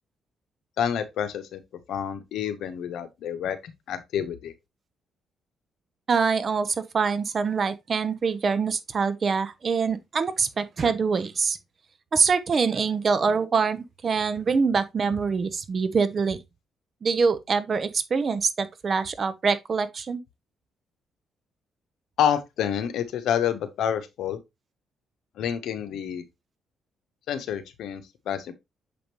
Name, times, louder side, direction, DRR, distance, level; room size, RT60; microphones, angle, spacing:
voice 1, 0.8-1.6 1.9-3.6 3.9-4.5 22.2-24.4 25.4-26.2 27.3-28.5, left 9 dB, 75° left, 0.9 m, -28 dB
voice 2, 6.1-11.6 12.1-13.8 14.0-16.4 17.0-20.2, right 5 dB, 40° right, 0.8 m, -24 dB
6.9 x 5.1 x 3.0 m
cardioid pair, 90°, 0 cm